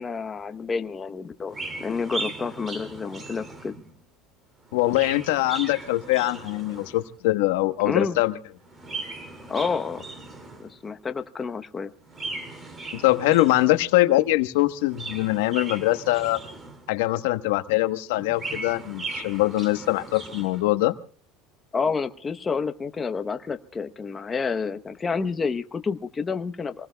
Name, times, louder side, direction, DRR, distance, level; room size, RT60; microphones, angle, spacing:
voice 1, 0.0-3.7 7.8-8.2 9.5-10.0 10.6-11.9 21.7-26.9, left 5 dB, 15° left, 7 dB, 0.9 m, -29 dB
Chirp tweet, 1.5-4.0 4.6-7.1 8.6-10.8 12.1-14.0 14.7-17.0 18.1-20.6, right 3 dB, 20° right, 2.3 m, -38 dB
voice 2, 4.7-8.3 12.9-16.4 16.9-20.9, left 17 dB, 85° left, 10 dB, 1.1 m, -23 dB
27.0 x 19.5 x 2.2 m, 0.43 s
cardioid pair, 155°, 0 cm